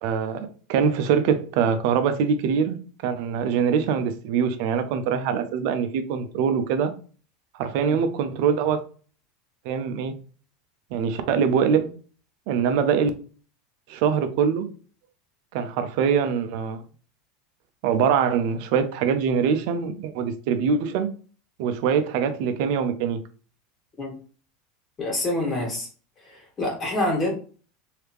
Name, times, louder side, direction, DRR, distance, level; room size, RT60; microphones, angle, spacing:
voice 1, 0.0-2.8 3.0-6.9 7.6-8.8 9.6-10.1 10.9-11.9 12.5-13.1 13.9-14.7 15.5-16.8 17.8-21.1 21.6-23.2, right 7 dB, 65° right, 0.6 m, -23 dB
voice 2, 25.0-25.9 26.2-27.3, left 1 dB, 30° left, 1.8 m, -26 dB
3.3 x 2.8 x 3.1 m
hypercardioid pair, 90°, 0 cm